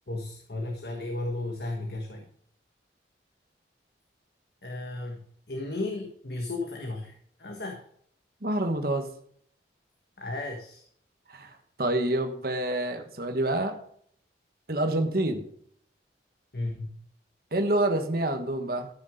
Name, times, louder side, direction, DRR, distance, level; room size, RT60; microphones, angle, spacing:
voice 1, 0.1-2.2 4.6-7.8 10.2-10.8 16.5-17.0, left 2 dB, 60° left, 2 dB, 1.6 m, -34 dB
voice 2, 8.4-9.1 11.3-13.8 14.7-15.5 17.5-18.9, right 1 dB, 55° right, 6 dB, 1.3 m, -27 dB
13.5 x 6.5 x 5.1 m, 0.64 s
head